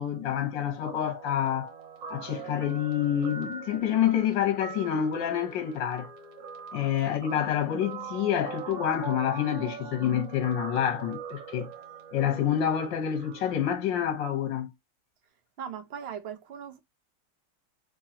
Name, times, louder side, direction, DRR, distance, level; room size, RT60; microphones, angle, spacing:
voice 1, 0.0-1.7 2.1-6.1 6.7-11.7 12.1-14.7, left 9 dB, 80° left, 1.6 m, -28 dB
Guitar, 0.8-13.5, right 6 dB, 85° right, 1.7 m, -42 dB
voice 2, 15.6-16.8, right 8 dB, 50° right, 0.8 m, -39 dB
3.7 x 3.0 x 2.8 m
omnidirectional pair, 2.0 m